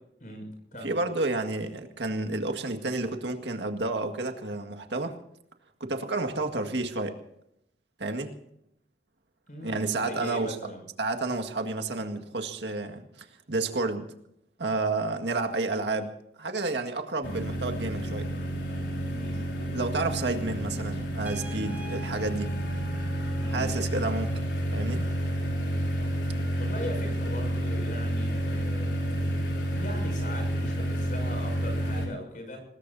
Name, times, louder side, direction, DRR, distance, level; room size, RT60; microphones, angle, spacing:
voice 1, 0.2-1.0 9.5-10.8 19.0-19.5 23.4-23.7 26.6-29.4 29.7-32.6, equal, 45° left, 4 dB, 6.6 m, -40 dB
voice 2, 0.8-5.2 5.8-7.2 8.0-8.3 9.6-10.6 11.0-13.1 13.5-14.1 14.6-16.1 16.4-18.3 19.7-22.5 23.5-24.4 24.7-25.1, right 2 dB, 85° right, 5 dB, 1.9 m, -30 dB
sound 1, 17.2-32.1, right 1 dB, 85° left, 4.9 m, -30 dB
Trumpet, 21.2-23.9, left 1 dB, 10° right, 2.4 m, -47 dB
25.5 x 19.5 x 2.8 m, 0.77 s
head